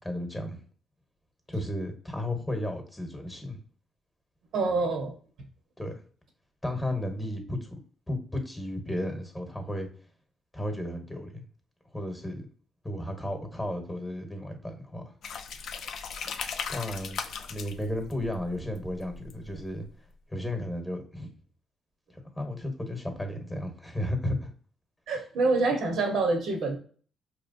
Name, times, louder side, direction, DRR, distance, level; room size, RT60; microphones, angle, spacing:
voice 1, 0.0-0.6 1.5-3.6 5.8-5.9 6.6-7.8 8.1-9.9 10.5-11.4 11.9-12.5 12.8-15.0 16.7-17.2 17.5-19.8 20.3-21.3 22.4-24.5, left 1 dB, 10° left, 4 dB, 1.1 m, -33 dB
voice 2, 4.5-5.1 25.1-26.8, right 3 dB, 75° right, 3 dB, 1.1 m, -26 dB
sound 1, 15.2-19.9, left 6 dB, 70° left, 0.4 m, -38 dB
4.4 x 3.1 x 2.6 m, 0.43 s
cardioid pair, 90°, 0 cm